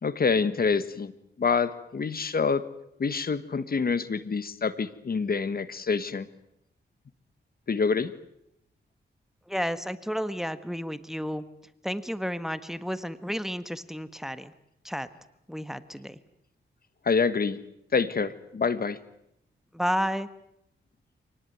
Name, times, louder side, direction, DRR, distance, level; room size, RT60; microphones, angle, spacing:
voice 1, 0.0-1.1 1.4-2.6 3.0-6.3 7.7-8.1 17.0-17.6 17.9-19.0, left 5 dB, 50° left, 14 dB, 1.5 m, -26 dB
voice 2, 9.5-11.4 11.8-14.5 14.8-15.1 15.5-16.2 19.7-20.3, equal, ahead, 13 dB, 1.5 m, -31 dB
27.0 x 19.5 x 9.4 m, 0.80 s
cardioid pair, 70°, 19 cm